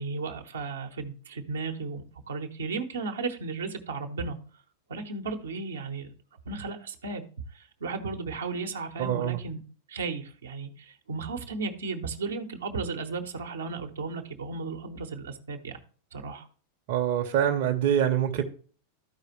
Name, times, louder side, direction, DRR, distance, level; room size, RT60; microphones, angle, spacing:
voice 1, 0.0-4.4 4.9-6.1 6.5-7.2 7.5-9.6 9.9-15.8 16.1-16.5, right 4 dB, 70° right, 1.1 m, -35 dB
voice 2, 9.0-9.4 16.9-18.4, right 10 dB, 45° right, 1.0 m, -25 dB
13.5 x 4.9 x 3.1 m
figure-of-eight pair, 90°, 0 cm